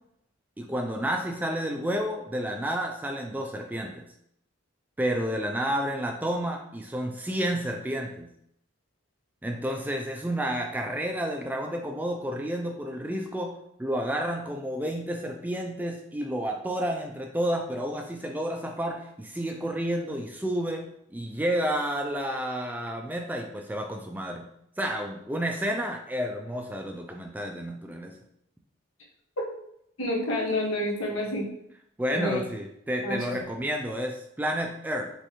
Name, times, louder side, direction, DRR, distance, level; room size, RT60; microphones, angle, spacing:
voice 1, 0.6-4.0 5.0-8.3 9.4-13.5 13.8-20.8 21.1-24.5 24.8-28.1 32.0-35.1, equal, 10° right, 3 dB, 0.3 m, -30 dB
voice 2, 30.0-31.5 32.1-32.4 33.0-33.2, left 1 dB, 80° left, -2 dB, 1.3 m, -28 dB
5.5 x 3.1 x 3.1 m, 0.74 s
head